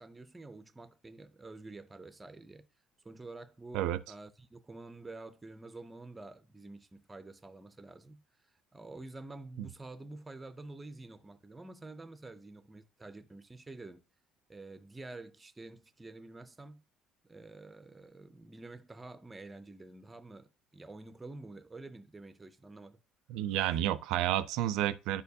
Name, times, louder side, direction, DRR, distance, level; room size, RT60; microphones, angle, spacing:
voice 1, 0.0-2.7 3.0-8.2 8.7-14.0 14.5-16.8 17.3-23.0, right 2 dB, 10° right, 0.4 m, -48 dB
voice 2, 23.3-25.2, right 12 dB, 75° right, 0.4 m, -30 dB
11.0 x 4.5 x 2.7 m
cardioid pair, 165°, 0 cm